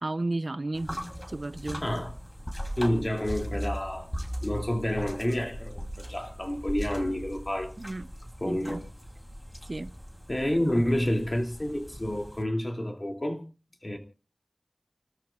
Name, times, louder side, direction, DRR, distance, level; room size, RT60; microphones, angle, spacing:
voice 1, 0.0-0.9 1.3-1.8 7.8-8.1 8.5-8.8 9.7-9.9, right 2 dB, 60° right, 0.7 m, -33 dB
sound 1, 0.7-12.4, equal, 15° left, 3.1 m, -39 dB
voice 2, 1.8-2.1 2.8-4.1 4.4-7.7 8.4-8.8 10.3-13.4 13.8-14.0, left 1 dB, 35° left, 2.6 m, -29 dB
29.5 x 13.5 x 2.4 m
wide cardioid pair, 50°, 0 cm